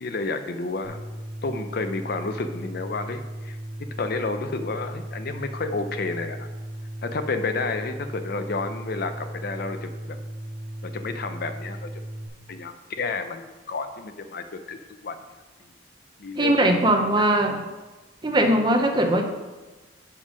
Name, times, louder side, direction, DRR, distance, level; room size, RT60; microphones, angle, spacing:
voice 1, 0.0-1.0 1.4-3.6 4.0-6.5 7.0-10.2 10.8-11.9 12.5-15.2 16.2-17.2, left 3 dB, 55° left, 8 dB, 0.5 m, -31 dB
sound 1, 0.8-12.3, right 1 dB, 20° left, 2.1 m, -36 dB
voice 2, 16.4-17.6 18.2-19.2, right 1 dB, 25° right, 4 dB, 0.8 m, -20 dB
7.0 x 5.4 x 5.0 m, 1.2 s
head